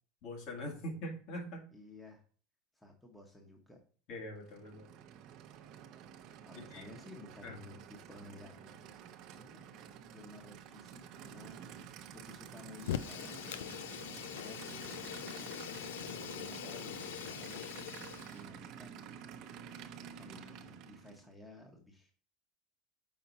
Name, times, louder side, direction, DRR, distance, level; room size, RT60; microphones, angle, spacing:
voice 1, 0.2-1.6 4.1-4.9 6.5-6.9 7.4-7.6, equal, 55° left, 1 dB, 2.1 m, -43 dB
voice 2, 1.7-2.2 2.7-3.8 6.4-8.9 9.3-9.8 10.1-15.0 16.0-17.6 18.0-19.1 20.1-22.1, left 2 dB, 5° left, 1 dB, 1.1 m, -54 dB
Aircraft / Idling, 4.4-21.3, right 8 dB, 50° right, 0.7 m, -50 dB
Fire, 12.8-18.4, left 11 dB, 90° left, 0.4 m, -42 dB
5.7 x 4.3 x 4.0 m, 0.41 s
supercardioid pair, 130°, 0 cm